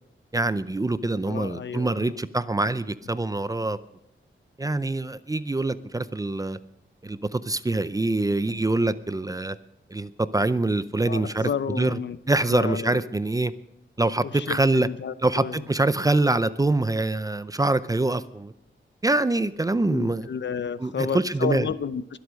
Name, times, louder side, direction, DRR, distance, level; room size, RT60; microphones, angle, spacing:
voice 1, 0.3-3.8 4.6-6.6 7.0-9.6 9.9-12.0 12.3-13.5 14.0-14.9 15.2-18.5 19.0-20.3 20.8-21.7, right 2 dB, 15° right, 15 dB, 0.5 m, -25 dB
voice 2, 1.3-2.0 11.1-12.2 12.5-13.0 14.3-15.5 19.9-22.2, left 7 dB, 60° left, 16 dB, 0.7 m, -31 dB
22.5 x 8.1 x 6.3 m, 0.87 s
wide cardioid pair, 155°, 21 cm